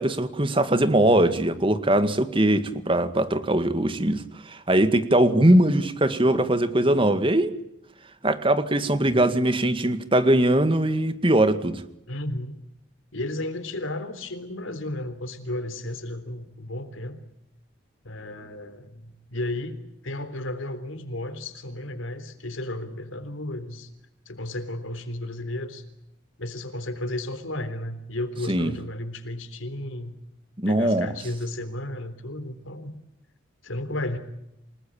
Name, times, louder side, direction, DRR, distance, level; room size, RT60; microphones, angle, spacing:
voice 1, 0.0-7.5 8.2-11.8 28.5-28.7 30.6-31.1, right 1 dB, 25° right, 11 dB, 2.0 m, -21 dB
voice 2, 12.1-12.6 13.1-17.2 18.0-23.9 24.3-25.8 26.4-30.2 30.7-32.9 33.6-34.2, left 1 dB, 90° left, 11 dB, 3.6 m, -33 dB
28.5 x 19.5 x 8.8 m, 0.81 s
head